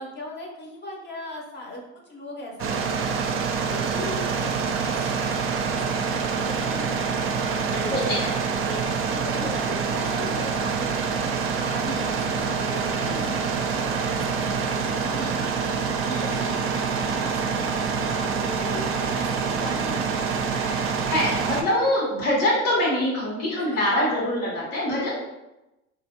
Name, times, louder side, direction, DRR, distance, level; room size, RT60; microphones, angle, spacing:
voice 1, 0.0-5.0 5.3-20.3 23.5-24.1, left 1 dB, 30° left, 0 dB, 0.9 m, -39 dB
sound 1, 2.6-21.6, right 5 dB, 35° right, 0.5 m, -26 dB
voice 2, 7.9-8.3 11.8-12.0 13.1-13.4 15.2-15.3 16.1-16.6 19.6-19.7 20.6-20.8 21.1-25.2, left 1 dB, 70° left, -6 dB, 1.3 m, -25 dB
3.3 x 2.5 x 2.8 m, 0.93 s
hypercardioid pair, 85°, 38 cm